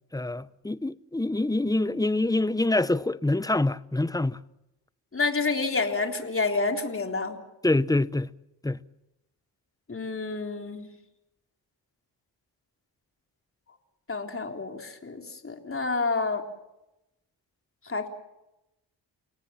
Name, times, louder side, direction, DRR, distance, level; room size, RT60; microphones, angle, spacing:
voice 1, 0.1-4.4 7.6-8.3 8.6-8.8, left 2 dB, 10° left, 0.8 m, -25 dB
voice 2, 5.1-7.4 9.9-10.9 14.1-16.4 17.9-18.1, left 3 dB, 30° left, 3.7 m, -29 dB
29.5 x 18.0 x 7.3 m
cardioid pair, 80°, 44 cm